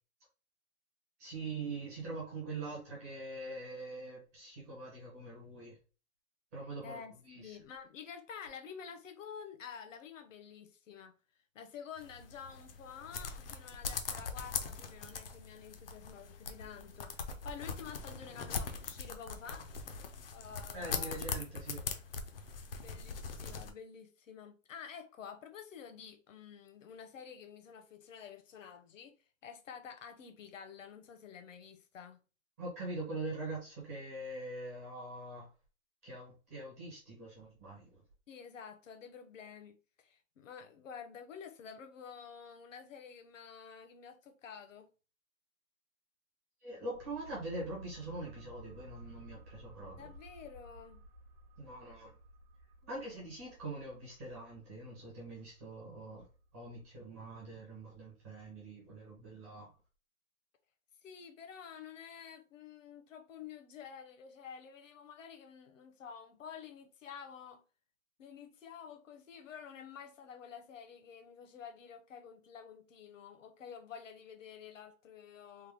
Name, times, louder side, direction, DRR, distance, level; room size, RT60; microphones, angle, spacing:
voice 1, 1.2-5.8 6.5-7.6 20.7-21.8 32.6-35.5 36.0-38.0 46.6-50.1 51.6-52.1 52.9-56.3 56.5-59.7, right 2 dB, 10° right, 0.6 m, -43 dB
voice 2, 6.8-11.1 11.5-17.1 17.4-19.7 20.3-21.2 22.7-29.2 29.4-32.2 38.3-44.9 50.0-51.0 61.0-67.6 68.2-75.7, left 7 dB, 70° left, 0.9 m, -50 dB
sound 1, 12.0-23.7, left 5 dB, 45° left, 0.5 m, -41 dB
sound 2, 46.9-58.3 58.6-58.7, right 1 dB, 40° right, 0.8 m, -56 dB
3.3 x 2.1 x 3.4 m
hypercardioid pair, 170°, 41 cm